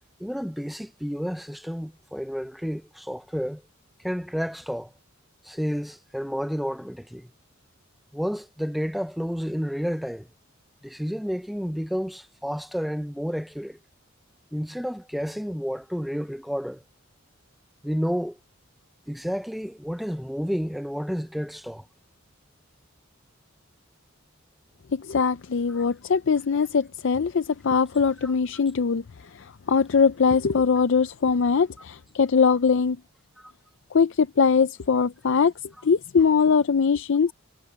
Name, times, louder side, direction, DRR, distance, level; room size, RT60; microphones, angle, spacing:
voice 1, 0.2-3.6 4.0-4.9 5.4-7.3 8.1-10.3 10.8-13.8 14.5-16.8 17.8-18.4 19.1-21.8 25.7-25.9 28.2-28.3 33.4-33.5, equal, ahead, 0.5 m, -30 dB
voice 2, 24.9-29.0 29.7-33.0 33.9-35.5 35.8-37.3, left 5 dB, 60° left, 0.5 m, -21 dB
head